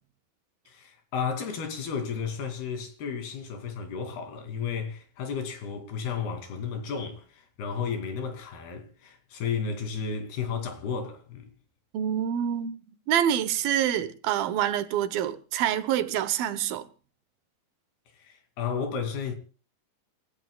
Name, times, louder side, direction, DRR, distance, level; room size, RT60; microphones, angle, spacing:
voice 1, 0.7-11.5 18.2-19.3, left 6 dB, 85° left, 4.6 m, -33 dB
voice 2, 11.9-12.7 13.1-16.9, right 10 dB, 75° right, 2.6 m, -26 dB
28.0 x 15.0 x 2.3 m
omnidirectional pair, 4.4 m